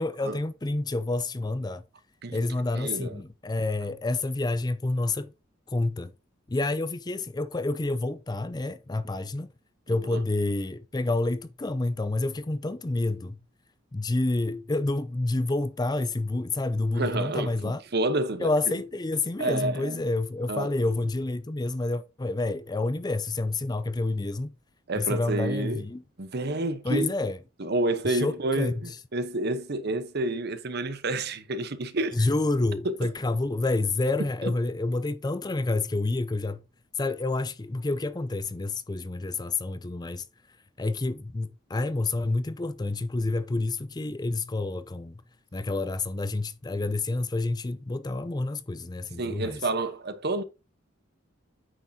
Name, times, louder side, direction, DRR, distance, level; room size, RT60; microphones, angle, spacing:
voice 1, 0.0-1.8 2.3-5.3 5.7-6.1 6.5-9.5 9.9-13.4 13.9-17.8 18.4-24.5 25.0-26.0 26.8-27.4 28.1-28.8 32.1-36.6 37.0-40.2 40.8-45.2 45.5-49.6, left 2 dB, 20° left, 0.5 m, -28 dB
voice 2, 2.7-3.1 10.1-10.2 16.9-18.5 19.4-20.0 20.5-20.7 24.9-25.8 26.2-27.1 27.6-32.3 49.2-50.4, right 2 dB, 55° right, 1.0 m, -29 dB
9.1 x 6.5 x 2.8 m
head